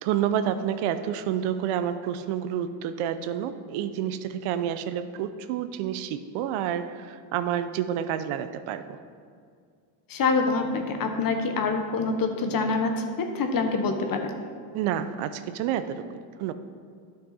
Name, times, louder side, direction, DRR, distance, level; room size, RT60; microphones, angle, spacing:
voice 1, 0.0-9.0 14.7-16.5, right 9 dB, 75° right, 11 dB, 0.7 m, -29 dB
voice 2, 10.1-12.9 13.2-14.3, left 4 dB, 45° left, 5 dB, 1.1 m, -25 dB
11.5 x 6.2 x 4.1 m, 2.2 s
cardioid pair, 105°, 50 cm